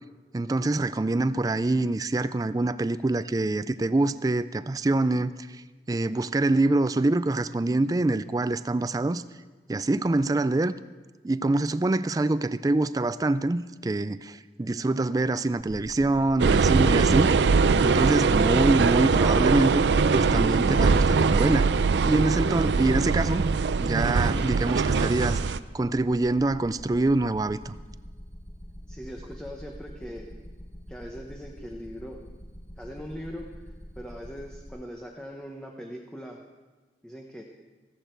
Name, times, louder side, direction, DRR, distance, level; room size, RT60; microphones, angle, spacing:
voice 1, 0.3-9.2 9.7-10.7 11.2-17.3 17.8-19.8 20.1-21.7 22.0-23.5 23.8-27.8, right 2 dB, 20° right, 0.3 m, -25 dB
sound 1, 15.6-34.7, equal, 35° left, 1.5 m, -45 dB
sound 2, 16.4-25.6, right 4 dB, 85° right, 0.5 m, -22 dB
voice 2, 28.9-30.4 30.9-32.3 32.8-36.4 37.0-37.4, equal, 5° left, 0.9 m, -41 dB
14.5 x 14.5 x 4.5 m
head